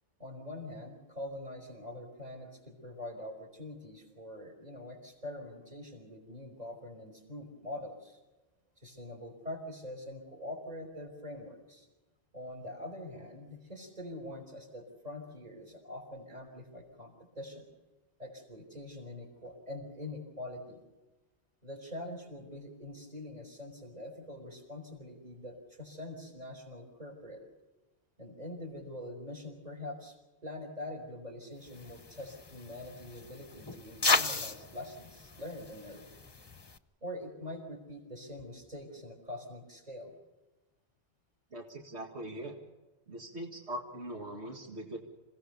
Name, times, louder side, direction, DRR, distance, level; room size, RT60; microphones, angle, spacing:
voice 1, 0.2-8.2 8.8-11.9 12.3-17.7 18.2-20.8 21.6-27.4 28.2-30.2 30.4-36.1 37.0-40.1, left 1 dB, 40° right, 2 dB, 5.3 m, -44 dB
sound 1, 31.7-36.8, left 3 dB, 25° left, 0.9 m, -35 dB
voice 2, 41.5-42.5 43.1-45.0, right 1 dB, 85° right, 1 dB, 2.4 m, -41 dB
27.5 x 17.0 x 7.0 m, 1.1 s
omnidirectional pair, 1.1 m